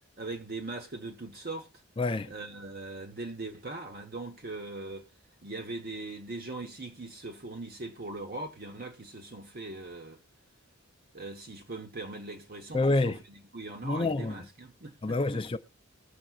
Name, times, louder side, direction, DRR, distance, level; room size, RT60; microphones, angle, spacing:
voice 1, 0.2-1.7 2.3-5.1 5.4-10.2 11.1-15.4, right 2 dB, 45° right, 1.2 m, -40 dB
voice 2, 2.0-2.3 12.7-13.2 13.8-14.5 15.0-15.6, left 2 dB, 25° left, 0.5 m, -27 dB
20.0 x 7.0 x 2.4 m
head